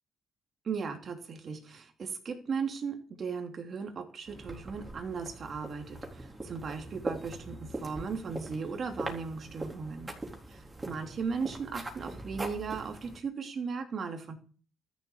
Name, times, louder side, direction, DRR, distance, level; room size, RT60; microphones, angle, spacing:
voice 1, 0.6-10.1 10.5-10.6 10.8-14.3, right 5 dB, 50° right, 5 dB, 3.0 m, -37 dB
sound 1, 4.2-13.2, right 2 dB, 20° right, 3.9 m, -42 dB
13.5 x 7.3 x 7.3 m, 0.40 s
cardioid pair, 90°, 0 cm